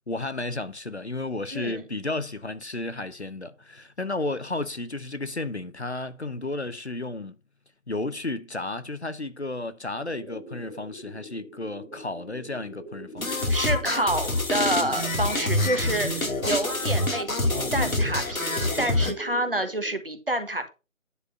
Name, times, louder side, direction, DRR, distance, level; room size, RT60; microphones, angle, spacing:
voice 1, 0.1-7.4 7.9-13.5 15.7-16.0, left 2 dB, 55° left, 0.8 m, -33 dB
voice 2, 1.5-1.8 13.3-20.7, right 1 dB, 40° right, 1.6 m, -28 dB
sound 1, 9.9-19.9, right 1 dB, ahead, 2.5 m, -42 dB
sound 2, 13.2-19.1, left 2 dB, 85° left, 2.4 m, -26 dB
10.0 x 4.8 x 5.5 m
figure-of-eight pair, 180°, 41 cm